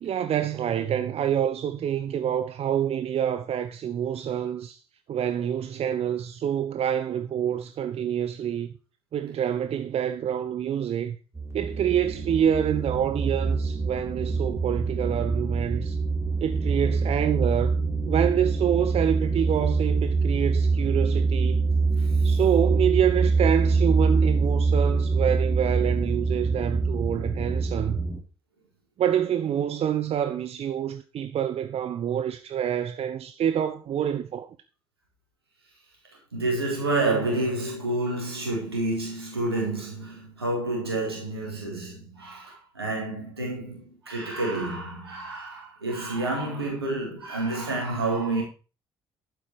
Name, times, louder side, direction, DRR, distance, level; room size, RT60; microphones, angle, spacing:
voice 1, 0.0-4.8 5.1-8.7 9.1-11.2 11.5-16.0 16.4-17.8 18.1-21.6 22.2-28.0 29.0-34.5, right 9 dB, 55° right, 1.0 m, -27 dB
sound 1, 11.3-28.2, right 4 dB, 20° right, 4.7 m, -25 dB
voice 2, 36.3-48.4, right 2 dB, 90° right, 4.4 m, -29 dB
11.5 x 9.6 x 4.9 m
figure-of-eight pair, 45°, 13 cm